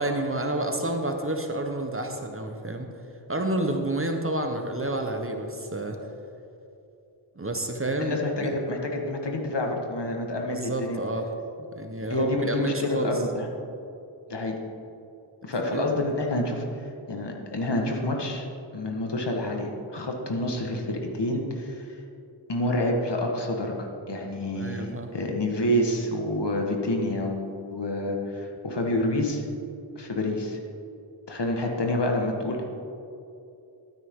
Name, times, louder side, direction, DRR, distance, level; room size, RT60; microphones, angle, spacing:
voice 1, 0.0-2.9 3.3-6.0 7.4-8.5 10.5-11.2 11.7-13.1 15.7-15.9 24.5-25.1, right 1 dB, 25° right, 4 dB, 1.1 m, -29 dB
voice 2, 8.0-11.0 12.1-13.5 14.3-14.6 15.4-18.5 18.7-21.9 22.5-29.4 29.9-30.6 31.3-32.6, left 1 dB, 55° left, 1 dB, 1.6 m, -28 dB
12.5 x 9.2 x 3.7 m, 2.7 s
cardioid pair, 55°, 50 cm